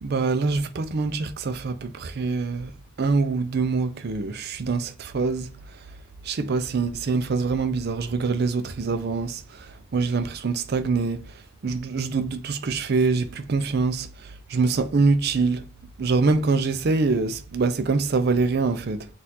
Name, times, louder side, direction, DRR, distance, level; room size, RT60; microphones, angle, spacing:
voice 1, 0.0-2.7 3.0-6.0 6.2-15.7 16.0-19.1, right 4 dB, 50° right, 0.4 m, -25 dB
4.3 x 2.4 x 4.0 m
head